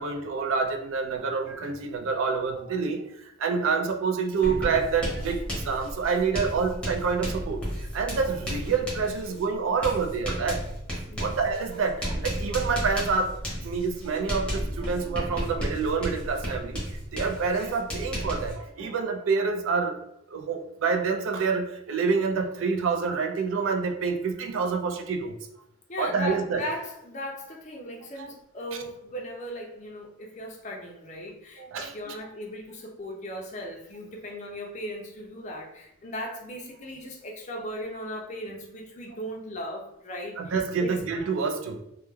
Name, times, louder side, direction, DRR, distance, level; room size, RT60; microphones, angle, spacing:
voice 1, 0.0-10.6 11.2-20.0 20.3-25.4 26.0-26.6 28.2-28.3 31.6-32.2 40.4-41.8, right 5 dB, 70° right, 5 dB, 0.3 m, -27 dB
Writing, 4.4-18.5, equal, 5° left, 0.7 m, -33 dB
voice 2, 11.1-11.4 25.9-40.5 40.8-41.0, left 1 dB, 35° left, 0 dB, 0.4 m, -37 dB
2.2 x 2.1 x 3.0 m, 0.81 s
head